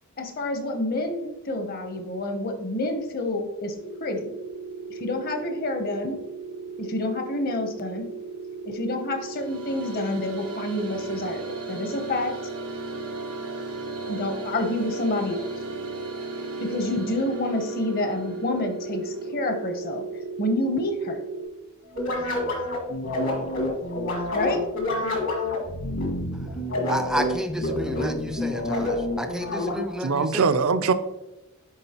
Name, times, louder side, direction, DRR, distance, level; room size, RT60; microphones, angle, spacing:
voice 1, 0.2-4.3 4.9-6.2 6.8-8.1 8.6-12.3 14.1-15.5 16.6-20.0 20.4-21.2 24.3-24.6, left 1 dB, 45° left, 6 dB, 0.8 m, -28 dB
sound 1, 3.7-21.4, right 4 dB, 80° left, 2.1 m, -36 dB
sound 2, 9.0-19.3, right 2 dB, 90° right, 1.1 m, -39 dB
sound 3, 21.9-30.1, left 1 dB, 65° left, 1.6 m, -28 dB
voice 2, 26.9-30.5, equal, 5° right, 8 dB, 0.4 m, -31 dB
voice 3, 29.7-30.9, right 5 dB, 70° right, 12 dB, 0.5 m, -23 dB
9.7 x 3.6 x 2.9 m, 0.95 s
head